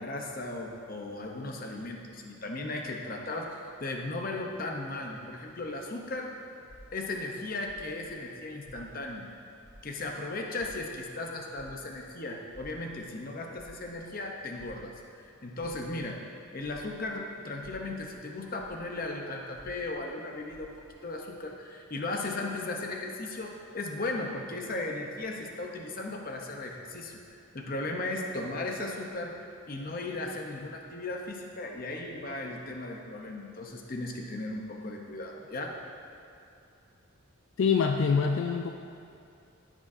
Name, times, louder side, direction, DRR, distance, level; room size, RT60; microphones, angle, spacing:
voice 1, 0.0-6.3 6.9-9.3 9.8-16.2 16.5-20.7 21.0-27.2 27.5-29.3 29.7-35.8, left 2 dB, 40° left, 1 dB, 0.8 m, -36 dB
sound 1, 6.7-9.3 9.6-17.1 17.5-21.0, equal, 5° left, 1.2 m, -55 dB
voice 2, 37.6-38.7, left 6 dB, 65° left, 3 dB, 0.4 m, -25 dB
14.0 x 6.3 x 2.7 m, 2.5 s
head